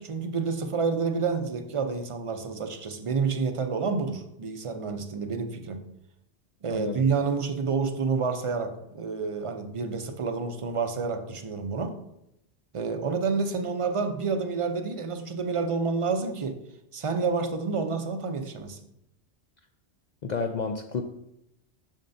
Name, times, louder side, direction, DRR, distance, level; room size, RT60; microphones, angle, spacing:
voice 1, 0.0-5.8 6.6-11.9 12.7-16.6 16.9-18.8, right 4 dB, 40° right, 7 dB, 0.5 m, -29 dB
voice 2, 6.7-7.0 20.2-21.0, left 4 dB, 60° left, 4 dB, 0.4 m, -30 dB
7.3 x 6.6 x 2.6 m, 0.81 s
omnidirectional pair, 1.2 m